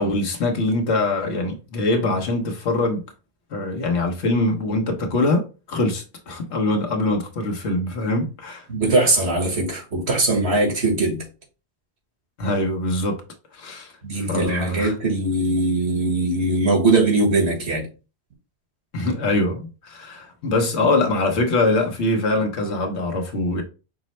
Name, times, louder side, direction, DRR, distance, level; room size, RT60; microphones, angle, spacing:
voice 1, 0.0-3.0 3.5-8.7 12.4-13.2 13.5-13.9 14.3-14.9 18.9-23.6, left 2 dB, 85° left, 1.3 m, -23 dB
voice 2, 8.7-11.2 14.0-17.9, right 2 dB, 85° right, 1.8 m, -21 dB
5.9 x 2.1 x 4.2 m
omnidirectional pair, 1.1 m